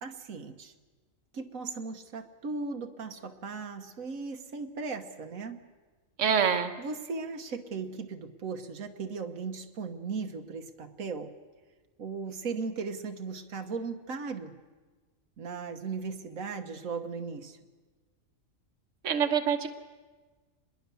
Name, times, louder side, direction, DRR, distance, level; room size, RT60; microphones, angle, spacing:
voice 1, 0.0-0.7 1.3-5.6 6.8-11.3 12.0-14.6 15.4-17.6, right 4 dB, 90° right, 5 dB, 1.6 m, -37 dB
voice 2, 6.2-6.7 19.0-19.7, right 7 dB, 65° right, 6 dB, 1.5 m, -25 dB
26.0 x 21.0 x 7.0 m, 1.4 s
omnidirectional pair, 1.4 m